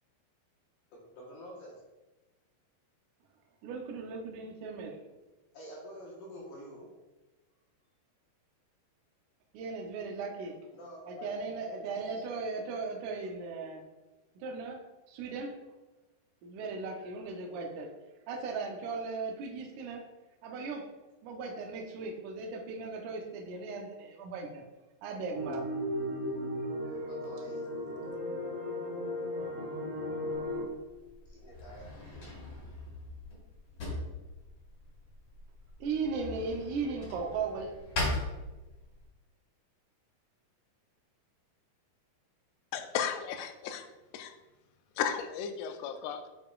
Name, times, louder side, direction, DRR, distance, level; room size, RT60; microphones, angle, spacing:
voice 1, 0.9-1.8 5.5-6.9 10.7-12.3 12.6-12.7 26.8-27.7 31.3-31.8, equal, 65° left, -4 dB, 2.4 m, -48 dB
voice 2, 3.6-5.0 9.5-10.6 11.1-13.8 14.4-15.6 16.4-17.9 18.3-20.1 20.4-20.9 21.2-24.6 25.0-25.7 35.8-37.7, right 4 dB, 85° right, 2 dB, 1.7 m, -37 dB
sound 1, 25.3-30.6, left 1 dB, 50° right, 2.3 m, -36 dB
Drawer open or close, 30.3-39.1, left 2 dB, 45° left, 2.2 m, -40 dB
voice 3, 42.7-43.9 44.1-44.3 45.0-46.3, left 8 dB, 85° left, 7 dB, 2.6 m, -34 dB
8.6 x 4.9 x 2.4 m, 1.1 s
omnidirectional pair, 4.7 m